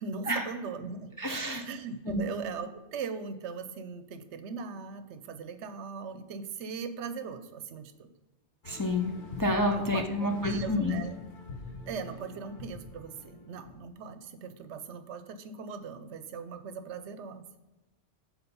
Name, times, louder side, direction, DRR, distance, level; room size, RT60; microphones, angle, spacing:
voice 1, 0.0-1.1 1.6-8.1 9.7-11.2 11.9-17.5, right 5 dB, 80° right, 10 dB, 0.9 m, -39 dB
voice 2, 1.2-1.7 2.1-2.2 8.6-11.0, left 1 dB, 30° left, 2 dB, 0.4 m, -29 dB
sound 1, 8.6-13.7, left 3 dB, 50° left, 1.0 m, -44 dB
6.9 x 4.2 x 5.4 m, 1.1 s
omnidirectional pair, 1.2 m